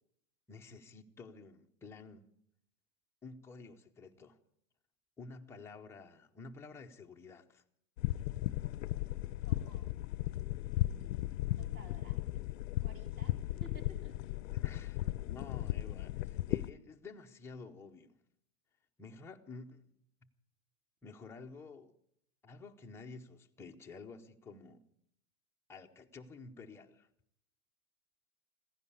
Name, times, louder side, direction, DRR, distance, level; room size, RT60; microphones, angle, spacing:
voice 1, 0.5-2.2 3.2-4.4 5.2-7.6 14.5-18.1 19.0-19.8 21.0-21.9 22.4-24.8 25.7-27.1, left 4 dB, 5° left, 0.6 m, -51 dB
sound 1, 8.0-16.7, left 15 dB, 60° left, 0.6 m, -36 dB
voice 2, 9.4-9.9 10.7-11.1 11.6-12.2 12.8-14.2, right 1 dB, 30° right, 3.0 m, -56 dB
15.5 x 10.5 x 8.3 m
hypercardioid pair, 140°, 44 cm